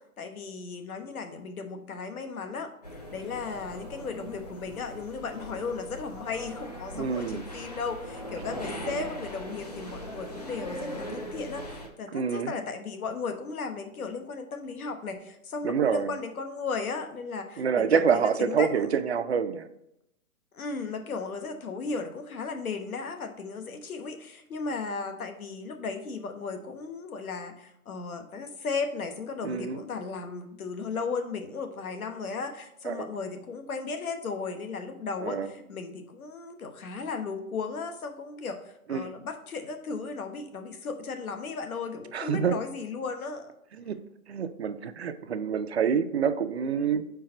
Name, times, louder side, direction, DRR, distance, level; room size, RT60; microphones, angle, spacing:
voice 1, 0.2-2.7 3.1-18.9 20.5-38.6 38.9-43.5, left 4 dB, 80° left, 6 dB, 1.1 m, -35 dB
sound 1, 2.8-11.9, equal, 30° left, 0.5 m, -40 dB
voice 2, 7.0-7.4 8.8-9.0 12.1-12.5 15.6-16.1 17.6-19.7 29.4-29.8 32.9-33.1 35.2-35.5 38.9-39.1 42.1-42.5 43.8-44.0 44.3-47.0, right 7 dB, 50° right, 9 dB, 0.5 m, -27 dB
4.7 x 4.7 x 4.3 m, 0.81 s
hypercardioid pair, 165°, 43 cm